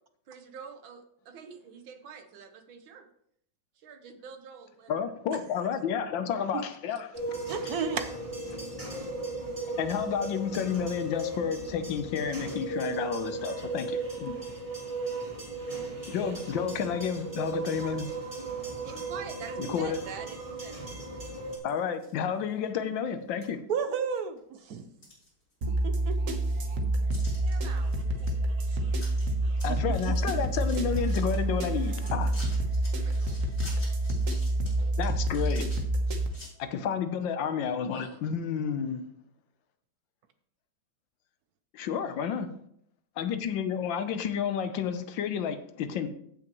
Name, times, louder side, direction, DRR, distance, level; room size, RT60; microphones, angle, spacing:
voice 1, 0.3-3.1 3.8-5.0 18.8-20.8 27.4-27.9 33.0-33.5 37.9-38.2, right 7 dB, 90° right, 7 dB, 1.8 m, -45 dB
voice 2, 4.9-7.4 9.8-14.3 16.1-18.1 19.6-20.0 21.6-23.6 29.6-32.4 35.0-35.7 36.6-39.1 41.7-42.5 43.2-46.1, left 7 dB, 75° left, 9 dB, 1.5 m, -31 dB
sound 1, 7.1-21.6, right 2 dB, 15° right, 2.8 m, -36 dB
voice 3, 7.5-8.1 23.7-24.8 25.8-26.4 29.9-30.1 34.8-34.9, right 6 dB, 65° right, 9 dB, 1.0 m, -32 dB
sound 2, 21.6-22.1 22.6-22.7 23.4-23.5 23.9-24.4 24.8-25.8 26.1-26.2 27.1-27.5 27.9-28.3 28.6-28.7 28.9-29.2 29.5-31.4 31.8-36.5, left 1 dB, 40° left, 5.0 m, -48 dB
sound 3, 25.6-36.3, right 1 dB, 50° right, 1.3 m, -28 dB
15.5 x 6.1 x 3.1 m, 0.69 s
omnidirectional pair, 2.1 m